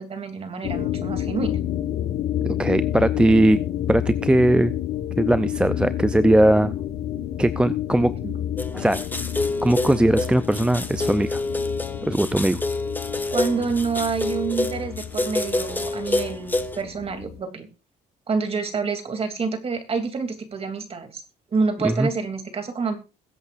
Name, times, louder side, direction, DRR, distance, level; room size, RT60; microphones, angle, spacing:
voice 1, 0.0-1.5 8.2-8.4 13.3-17.7 18.3-21.2 21.5-23.0, right 4 dB, 35° right, 7 dB, 2.8 m, -27 dB
sound 1, 0.6-17.4, left 11 dB, 70° left, 1.6 m, -30 dB
voice 2, 2.4-3.6 3.9-4.7 5.2-6.7 7.4-8.1 8.8-9.0 9.6-11.4 12.0-12.6 21.8-22.1, right 1 dB, 5° right, 12 dB, 0.5 m, -19 dB
sound 2, 8.6-16.8, left 2 dB, 10° left, 1.2 m, -27 dB
21.5 x 8.2 x 2.5 m, 0.30 s
cardioid pair, 110°, 17 cm